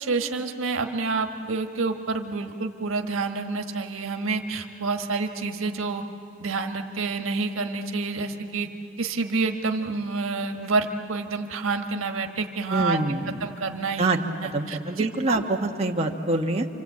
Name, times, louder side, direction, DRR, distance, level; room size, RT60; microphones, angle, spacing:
voice 1, 0.0-6.0 6.4-8.7 9.0-13.0 13.4-14.1 14.4-15.4, right 4 dB, 90° right, 5 dB, 1.4 m, -28 dB
voice 2, 12.7-13.4 14.0-14.2 14.5-16.7, right 2 dB, 30° right, 1 dB, 1.2 m, -25 dB
28.0 x 25.5 x 8.4 m, 2.7 s
head